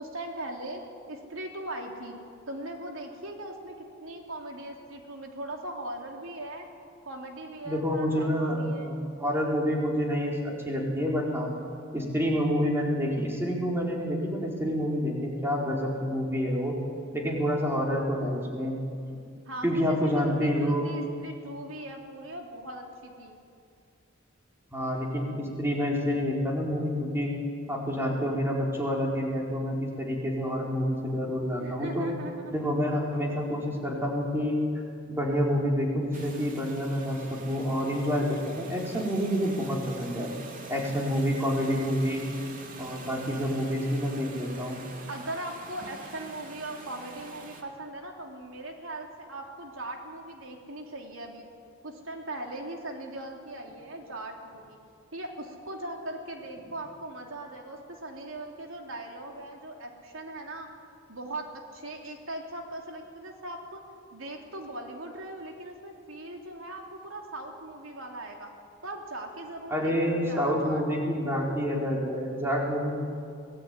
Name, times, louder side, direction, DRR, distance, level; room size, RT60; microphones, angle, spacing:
voice 1, 0.0-2.2 2.5-3.7 4.0-6.7 7.1-9.0 19.5-23.4 31.6-32.6 45.1-51.5 51.8-54.8 55.1-60.7 61.1-63.8 64.1-68.5 68.8-71.0, right 1 dB, 85° right, 2 dB, 3.3 m, -39 dB
voice 2, 7.6-11.5 11.9-16.8 17.1-18.8 19.6-20.9 24.7-27.3 27.7-32.1 32.5-34.6 35.1-40.3 40.7-42.3 42.8-44.8 69.7-73.0, equal, 10° right, -2 dB, 4.4 m, -28 dB
sound 1, 36.1-47.6, right 3 dB, 40° right, 2.8 m, -45 dB
25.5 x 19.0 x 9.7 m, 2.4 s
head